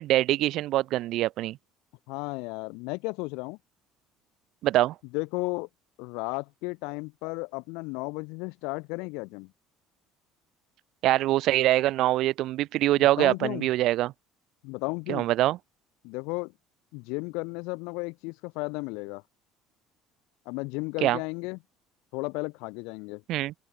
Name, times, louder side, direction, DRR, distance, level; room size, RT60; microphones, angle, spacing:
voice 1, 0.0-1.6 4.6-4.9 11.0-14.1 15.1-15.6 21.0-21.2 23.3-23.5, right 15 dB, 65° right, 1.0 m, -24 dB
voice 2, 2.1-3.6 5.1-5.7 6.0-9.5 13.0-13.7 14.6-15.3 16.0-16.5 16.9-19.2 20.5-21.6 22.1-23.2, left 28 dB, 80° left, 1.0 m, -34 dB
open air
supercardioid pair, 85°, 0 cm